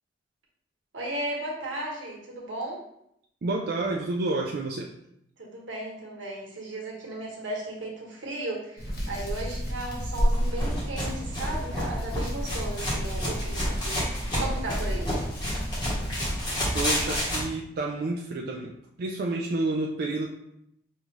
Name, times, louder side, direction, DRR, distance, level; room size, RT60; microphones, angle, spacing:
voice 1, 0.9-2.8 5.4-15.1, right 1 dB, 85° right, -2 dB, 1.1 m, -35 dB
voice 2, 3.4-4.9 16.0-16.1 16.7-20.3, right 2 dB, 55° right, -1 dB, 0.4 m, -30 dB
Hands, 8.8-17.2, equal, 55° left, 1.1 m, -32 dB
sound 1, 10.3-17.4, equal, 25° left, 1.2 m, -30 dB
5.2 x 2.3 x 3.1 m, 0.76 s
head